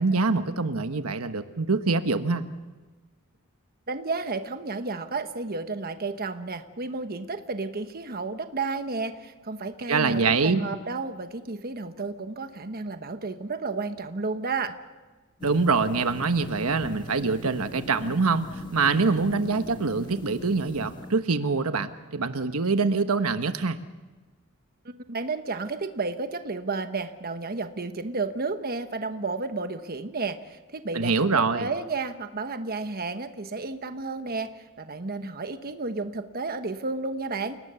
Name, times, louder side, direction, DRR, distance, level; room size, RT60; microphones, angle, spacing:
voice 1, 0.0-2.4 9.9-10.6 15.4-23.8 30.9-31.7, right 4 dB, 85° right, 9 dB, 1.2 m, -24 dB
voice 2, 3.9-14.7 24.8-34.5 34.8-37.6, right 3 dB, 45° right, 8 dB, 1.2 m, -32 dB
sound 1, 15.4-21.2, equal, 20° left, 1.9 m, -41 dB
29.5 x 19.0 x 7.0 m, 1.3 s
head